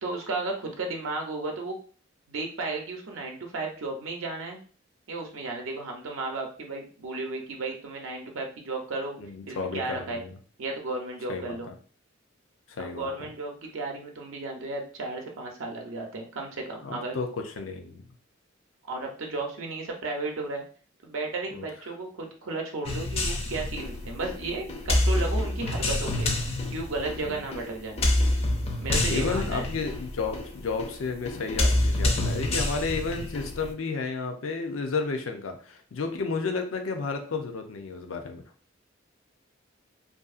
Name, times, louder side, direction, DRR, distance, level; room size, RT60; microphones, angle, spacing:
voice 1, 0.0-1.7 2.3-4.6 5.1-9.2 9.5-10.2 10.6-11.7 12.8-17.2 18.9-20.6 21.0-26.3 26.7-28.1 28.8-29.7, right 3 dB, 80° right, 1 dB, 0.6 m, -34 dB
voice 2, 9.2-10.4 11.3-11.7 12.7-13.3 16.8-18.0 21.5-21.7 27.2-27.4 29.1-38.4, left 4 dB, 90° left, 5 dB, 0.5 m, -32 dB
sound 1, 22.8-33.7, left 1 dB, 30° left, 0.4 m, -27 dB
2.6 x 2.6 x 2.4 m, 0.42 s
head